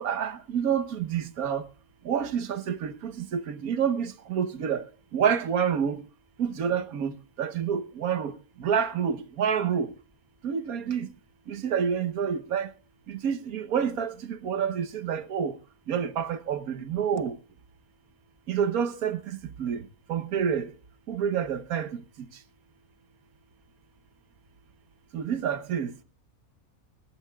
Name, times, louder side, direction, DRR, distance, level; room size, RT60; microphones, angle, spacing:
voice 1, 0.0-1.6 2.1-4.8 5.1-6.0 6.4-7.1 7.4-8.3 8.6-9.9 10.4-11.1 11.5-12.7 13.2-14.1 14.4-15.5 15.9-17.3 18.5-19.2 19.6-19.8 20.1-20.6 21.1-21.9 25.1-25.9, right 7 dB, 80° right, 1.4 m, -28 dB
24.0 x 12.0 x 2.3 m
omnidirectional pair, 1.5 m